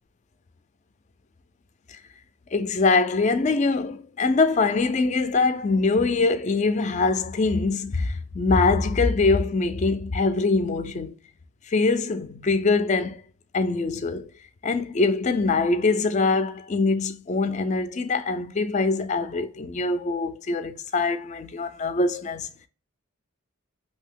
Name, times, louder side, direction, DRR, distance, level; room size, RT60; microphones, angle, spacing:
voice 1, 2.5-11.1 11.7-13.2 13.5-14.3 14.6-22.5, left 3 dB, 35° left, 0.3 m, -23 dB
2.7 x 2.7 x 3.5 m
head